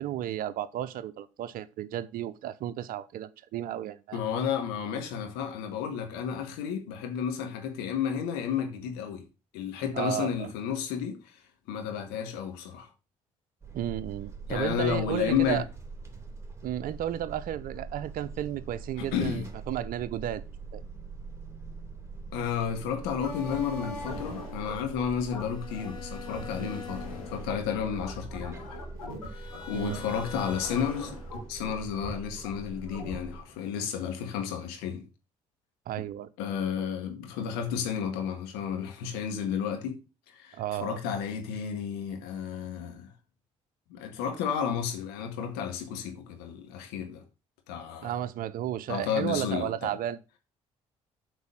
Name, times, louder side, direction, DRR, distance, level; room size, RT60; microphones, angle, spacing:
voice 1, 0.0-4.2 9.9-10.5 13.7-15.6 16.6-20.4 20.7-20.8 26.6-27.0 29.7-30.0 35.9-36.3 40.5-41.0 48.0-50.2, right 11 dB, 55° right, 0.7 m, -33 dB
voice 2, 4.1-9.3 9.5-11.2 11.7-12.9 14.5-15.6 19.0-19.5 22.3-28.8 29.3-31.2 31.5-35.0 36.4-40.0 40.3-43.1 43.9-47.2 47.7-48.1 48.9-49.9, left 8 dB, 70° left, 1.8 m, -32 dB
sound 1, 13.6-33.4, right 4 dB, 15° right, 2.7 m, -43 dB
sound 2, 23.2-33.6, left 3 dB, 85° left, 2.5 m, -41 dB
8.1 x 4.7 x 6.5 m
figure-of-eight pair, 45°, 17 cm